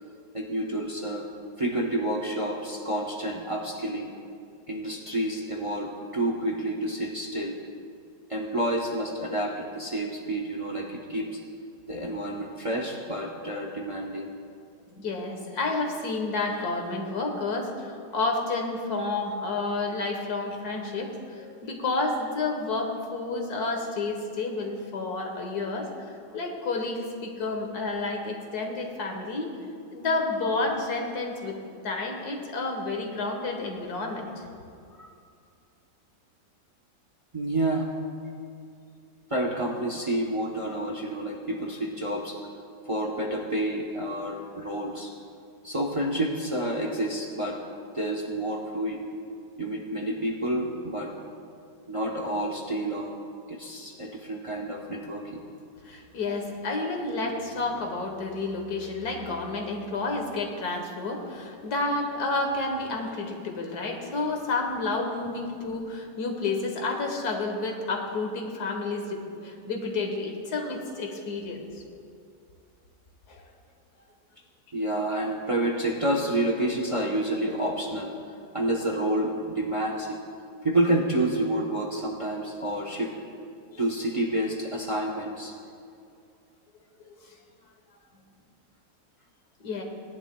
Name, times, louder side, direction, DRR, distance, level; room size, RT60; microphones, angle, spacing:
voice 1, 0.3-1.3 1.6-4.1 4.7-7.6 8.3-11.4 11.9-14.3 34.9-35.1 37.3-37.9 39.3-42.4 42.9-45.1 45.6-47.6 47.9-49.0 49.6-51.1 51.9-53.1 53.5-55.4 74.7-78.1 78.5-80.2 80.6-83.1 83.8-85.5, right 1 dB, 35° right, -1 dB, 0.5 m, -29 dB
voice 2, 14.9-21.1 21.4-29.5 29.9-31.6 31.8-34.5 55.8-71.7 73.3-73.4 75.1-75.2 87.0-87.1 89.6-89.8, left 3 dB, 60° left, 2 dB, 1.6 m, -30 dB
18.0 x 10.5 x 2.2 m, 2.4 s
omnidirectional pair, 1.9 m